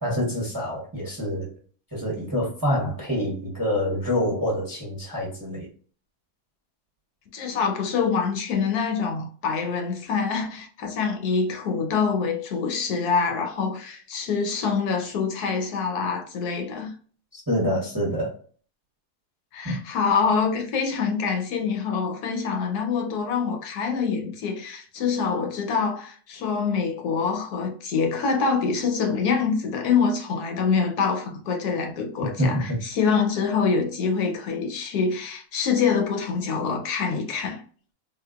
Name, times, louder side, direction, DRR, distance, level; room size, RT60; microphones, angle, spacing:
voice 1, 0.0-1.5 1.9-5.7 17.3-18.3 19.6-19.7 32.4-32.6, equal, 15° right, 0.7 m, -26 dB
voice 2, 7.3-16.9 19.5-37.6, left 5 dB, 75° left, 1.2 m, -25 dB
3.7 x 2.4 x 2.3 m
omnidirectional pair, 1.7 m